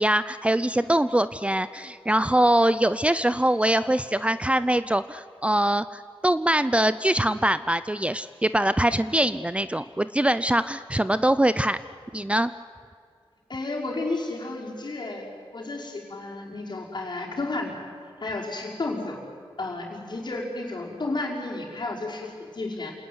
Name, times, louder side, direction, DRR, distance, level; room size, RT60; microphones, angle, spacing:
voice 1, 0.0-11.8 12.1-12.5, right 1 dB, 10° right, 14 dB, 0.6 m, -23 dB
voice 2, 13.5-15.3 15.5-17.7 18.2-19.2 19.6-22.9, left 2 dB, 50° left, -1 dB, 5.6 m, -32 dB
28.0 x 19.0 x 9.6 m, 2.1 s
wide cardioid pair, 80°, 10 cm